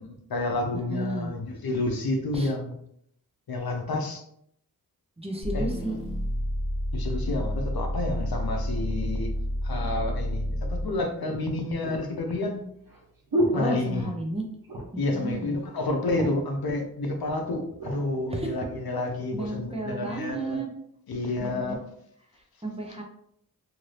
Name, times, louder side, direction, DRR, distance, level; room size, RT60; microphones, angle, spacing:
voice 1, 0.0-2.7 3.5-4.2 5.5-5.9 6.9-9.3 9.6-12.6 13.5-14.1 15.0-20.6 21.1-21.8, left 2 dB, 70° left, 3 dB, 0.7 m, -30 dB
voice 2, 0.7-1.3 2.3-2.5 5.2-6.0 13.5-14.4 14.9-15.6 18.3-18.5 19.3-20.7 21.4-21.8 22.6-23.0, right 2 dB, 15° right, 1 dB, 0.8 m, -33 dB
sound 1, 5.4-11.0, equal, 35° left, 1.3 m, -30 dB
sound 2, 10.3-10.4 11.2-14.3 14.6-15.1 15.5-15.6 15.9-16.6 17.3-18.0 18.6-18.8, right 1 dB, 65° right, 1.3 m, -32 dB
2.9 x 2.6 x 3.3 m, 0.69 s
cardioid pair, 55°, 38 cm